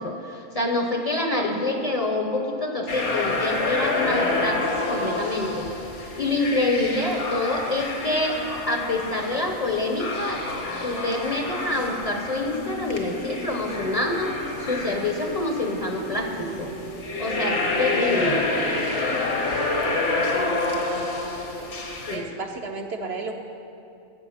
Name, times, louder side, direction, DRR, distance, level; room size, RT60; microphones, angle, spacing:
voice 1, 0.0-5.7 6.2-8.4 8.7-10.4 10.8-16.7 17.2-18.4 22.1-22.3, left 2 dB, 30° left, 2 dB, 0.9 m, -26 dB
sound 1, 2.9-22.2, left 2 dB, 60° left, 1.6 m, -28 dB
sound 2, 9.5-19.4, equal, 75° right, 2.3 m, -40 dB
voice 2, 19.6-21.1 21.4-21.7 22.1-23.3, right 3 dB, 55° right, 3 dB, 0.9 m, -36 dB
15.0 x 7.8 x 5.7 m, 2.7 s
omnidirectional pair, 1.4 m